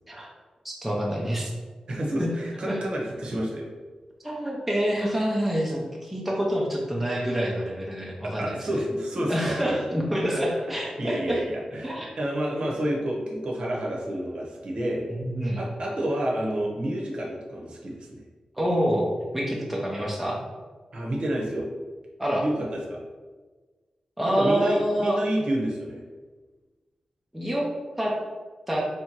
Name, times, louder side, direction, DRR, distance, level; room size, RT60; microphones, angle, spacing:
voice 1, 0.6-1.5 2.2-2.3 2.7-2.8 4.2-8.7 9.3-11.4 11.8-12.1 15.1-15.6 18.6-19.1 19.3-20.4 22.2-22.4 24.2-25.2 27.3-27.7 28.0-28.1 28.7-28.8, equal, 5° right, -3 dB, 0.6 m, -27 dB
voice 2, 1.9-3.7 8.2-9.8 10.3-10.4 11.0-15.1 15.6-18.2 20.9-21.7 22.4-23.0 24.3-26.0, right 1 dB, 55° right, -2 dB, 0.9 m, -29 dB
3.3 x 2.9 x 4.5 m, 1.3 s
wide cardioid pair, 150°, 2 cm